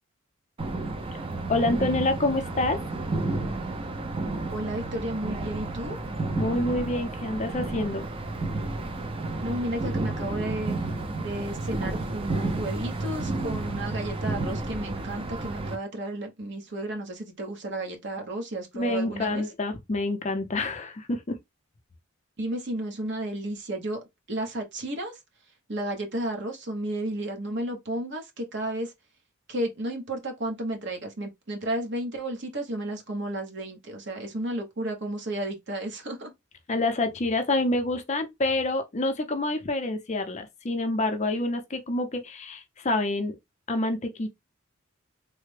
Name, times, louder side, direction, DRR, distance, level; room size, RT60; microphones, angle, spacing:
sound 1, 0.6-15.8, right 2 dB, 25° right, 0.5 m, -31 dB
voice 1, 1.5-2.8 6.4-8.1 18.7-21.4 36.7-43.3 43.7-44.3, left 2 dB, 35° left, 0.5 m, -27 dB
voice 2, 4.5-6.0 9.4-10.8 11.2-19.4 22.4-25.2 25.7-28.9 29.5-36.3, right 1 dB, 55° right, 0.9 m, -33 dB
3.3 x 2.1 x 3.2 m
head